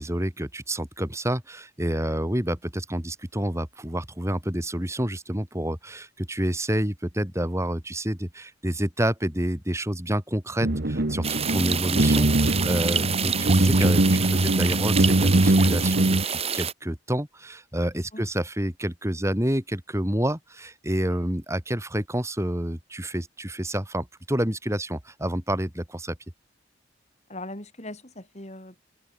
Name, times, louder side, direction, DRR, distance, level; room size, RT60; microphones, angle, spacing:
voice 1, 0.0-26.2, right 1 dB, 15° right, 4.2 m, -28 dB
sound 1, 10.6-16.2, right 1 dB, 55° right, 1.4 m, -22 dB
sound 2, 11.2-16.7, right 7 dB, 30° right, 4.1 m, -28 dB
voice 2, 27.3-28.8, left 1 dB, 35° left, 7.3 m, -40 dB
head